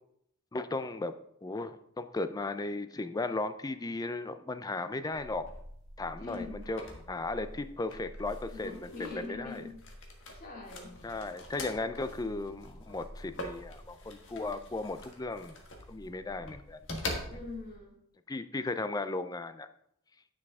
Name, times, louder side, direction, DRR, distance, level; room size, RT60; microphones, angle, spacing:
voice 1, 0.5-1.1 1.4-5.5 6.0-9.6 11.0-15.6 15.9-16.8 17.1-17.3 18.3-19.7, left 2 dB, 15° left, 11 dB, 0.4 m, -36 dB
sound 1, 5.1-17.8, left 1 dB, 60° left, 1.5 m, -44 dB
voice 2, 6.2-6.7 8.5-9.8 10.3-10.9 17.3-18.0, left 3 dB, 40° left, -1 dB, 2.3 m, -43 dB
10.0 x 6.3 x 3.6 m, 0.73 s
head